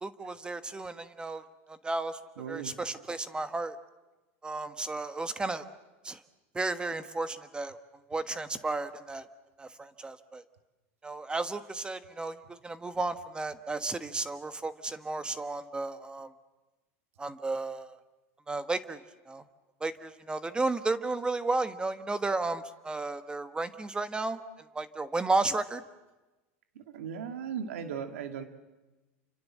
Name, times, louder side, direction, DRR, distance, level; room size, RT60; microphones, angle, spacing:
voice 1, 0.0-2.2 2.5-3.8 4.4-5.6 6.0-6.2 6.5-7.8 8.1-9.2 9.6-10.4 11.0-16.3 17.2-17.9 18.5-19.0 19.3-19.4 19.8-24.4 24.7-25.8, right 3 dB, 15° right, 10 dB, 1.3 m, -33 dB
voice 2, 2.4-2.7 26.8-28.5, right 7 dB, 90° right, 6 dB, 2.1 m, -37 dB
29.0 x 25.5 x 7.6 m, 1.1 s
supercardioid pair, 115°, 7 cm